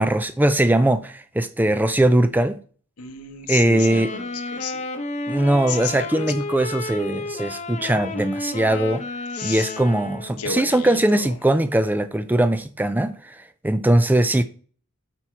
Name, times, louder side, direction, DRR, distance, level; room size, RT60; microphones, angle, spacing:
voice 1, 0.0-2.6 3.5-4.1 5.3-9.0 9.4-13.4 13.6-14.4, right 1 dB, 10° right, 0.4 m, -20 dB
voice 2, 3.0-4.8 5.7-6.3 9.3-9.7 10.4-11.3, left 6 dB, 80° left, 1.1 m, -32 dB
sound 1, 3.6-10.5, left 2 dB, 30° left, 0.9 m, -32 dB
8.6 x 4.3 x 4.5 m
head